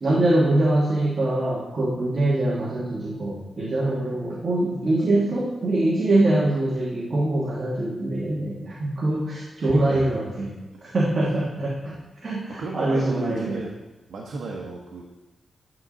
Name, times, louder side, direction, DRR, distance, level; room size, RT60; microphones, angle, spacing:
voice 1, 0.0-10.5 10.8-12.0 12.2-13.6, right 1 dB, 35° right, -3 dB, 1.3 m, -23 dB
voice 2, 9.6-10.3 12.6-13.7 14.1-15.0, right 3 dB, 70° right, -1 dB, 1.0 m, -32 dB
9.4 x 3.9 x 6.3 m, 1.1 s
wide cardioid pair, 165°, 0 cm